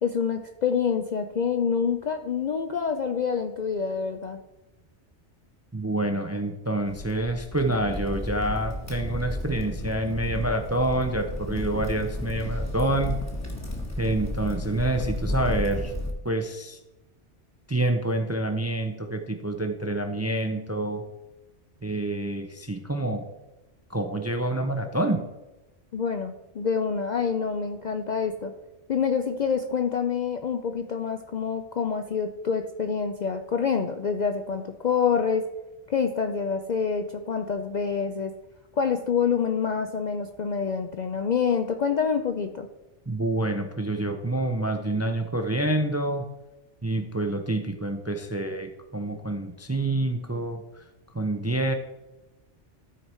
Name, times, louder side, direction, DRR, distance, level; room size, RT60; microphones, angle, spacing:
voice 1, 0.0-4.4 25.9-28.5 28.9-35.4 35.9-38.3 38.8-42.7, left 6 dB, 55° left, 6 dB, 0.5 m, -27 dB
voice 2, 5.7-13.2 14.0-15.9 16.2-16.8 17.7-21.0 21.8-23.3 23.9-25.2 43.1-46.3 46.8-50.8 51.1-51.7, right 1 dB, 20° right, 6 dB, 0.4 m, -27 dB
Crackle, 6.9-16.1, left 1 dB, 15° left, 1.2 m, -33 dB
13.0 x 4.7 x 4.3 m, 1.0 s
omnidirectional pair, 1.2 m